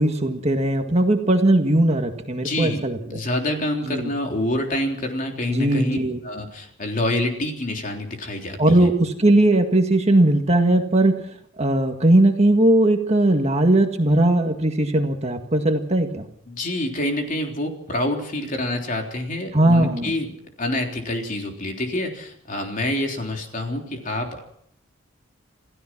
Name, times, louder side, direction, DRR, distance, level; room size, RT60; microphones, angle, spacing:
voice 1, 0.0-3.0 3.9-4.1 5.5-6.2 8.6-11.1 11.6-16.2 19.5-20.1, right 1 dB, 30° right, 5 dB, 1.8 m, -18 dB
voice 2, 2.3-6.0 6.2-8.9 16.5-24.4, left 1 dB, 40° left, 2 dB, 3.5 m, -27 dB
28.0 x 16.0 x 6.1 m, 0.70 s
head